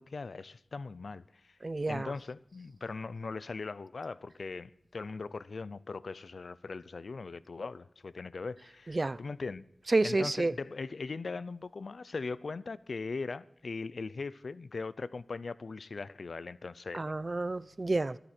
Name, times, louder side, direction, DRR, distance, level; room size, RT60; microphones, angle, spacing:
voice 1, 0.0-1.5 1.9-9.6 10.0-17.0, left 4 dB, 85° left, 0.5 m, -40 dB
voice 2, 1.6-2.1 8.9-9.2 9.9-10.5 16.9-18.2, right 2 dB, 45° right, 0.6 m, -30 dB
24.0 x 13.5 x 4.4 m
wide cardioid pair, 75°, 0 cm